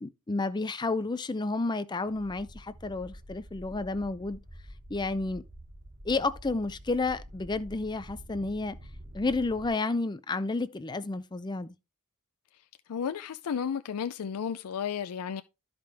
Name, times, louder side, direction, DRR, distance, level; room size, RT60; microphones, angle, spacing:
voice 1, 0.0-4.4 4.9-5.4 6.0-8.8 9.1-11.7, left 3 dB, 20° left, 0.4 m, -31 dB
sound 1, 2.1-9.7, equal, 45° right, 1.5 m, -48 dB
voice 2, 12.9-15.4, left 7 dB, 90° left, 0.4 m, -33 dB
12.5 x 5.2 x 3.4 m
head